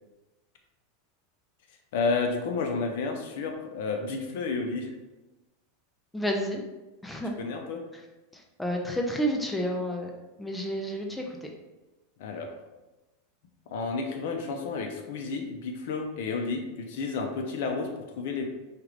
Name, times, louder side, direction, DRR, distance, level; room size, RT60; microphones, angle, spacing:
voice 1, 1.9-4.9 7.4-7.8 12.2-12.5 13.7-18.4, left 4 dB, 65° left, 4 dB, 0.6 m, -31 dB
voice 2, 6.1-6.6 7.0-7.3 8.6-10.1 10.4-11.2, equal, 5° left, 1 dB, 0.4 m, -29 dB
4.5 x 2.5 x 3.1 m, 1.1 s
supercardioid pair, 150°, 0 cm